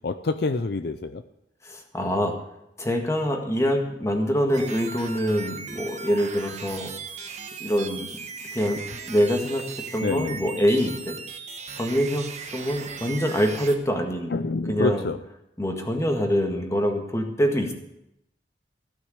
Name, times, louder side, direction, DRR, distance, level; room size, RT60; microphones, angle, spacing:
voice 1, 0.0-1.2 10.0-10.4 14.3-15.2, left 3 dB, 65° left, 10 dB, 0.6 m, -27 dB
voice 2, 1.6-2.4 2.8-6.9 7.6-8.2 8.5-11.2 11.8-12.3 12.5-14.3 14.7-15.1 15.6-17.7, equal, 15° left, 3 dB, 1.7 m, -25 dB
sound 1, 4.5-13.8, right 5 dB, 40° right, 1.3 m, -38 dB
15.5 x 6.4 x 8.1 m, 0.82 s
head